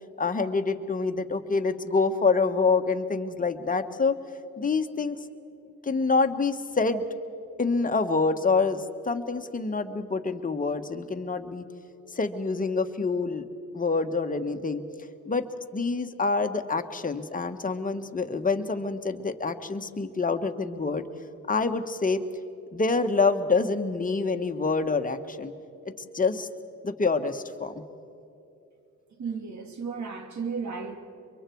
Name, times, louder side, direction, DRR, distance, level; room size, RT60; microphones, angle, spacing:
voice 1, 0.2-4.2 4.6-5.2 5.8-7.0 7.6-11.6 12.1-13.4 13.7-14.8 15.2-15.5 15.7-21.1 21.5-22.2 22.7-25.5 25.8-26.5 26.8-27.8, left 4 dB, 25° left, 7 dB, 1.4 m, -26 dB
voice 2, 29.2-31.0, right 5 dB, 65° right, 5 dB, 2.5 m, -34 dB
24.0 x 23.5 x 4.7 m, 2.7 s
cardioid pair, 70°, 31 cm